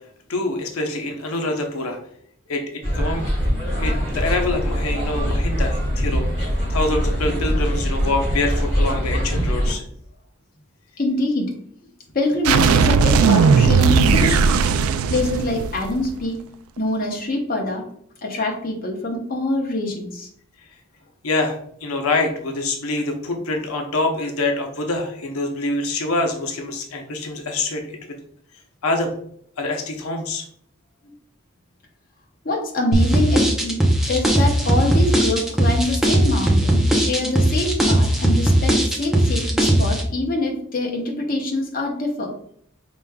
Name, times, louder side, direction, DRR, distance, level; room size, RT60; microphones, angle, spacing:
voice 1, 0.3-2.0 2.5-3.3 3.8-9.8 21.2-27.8 28.8-29.1 29.6-30.4, left 2 dB, 90° left, 4 dB, 0.7 m, -25 dB
sound 1, 2.8-9.7, equal, 25° right, 1.5 m, -22 dB
voice 2, 11.0-11.5 12.1-14.5 15.1-16.4 16.8-17.8 18.2-20.3 31.0-31.1 32.4-33.8 34.1-42.3, left 2 dB, 40° left, 0 dB, 0.8 m, -24 dB
sound 2, 12.4-16.1, right 5 dB, 85° right, 0.3 m, -17 dB
sound 3, 32.9-40.0, right 1 dB, ahead, 0.6 m, -18 dB
5.1 x 3.5 x 2.2 m, 0.64 s
head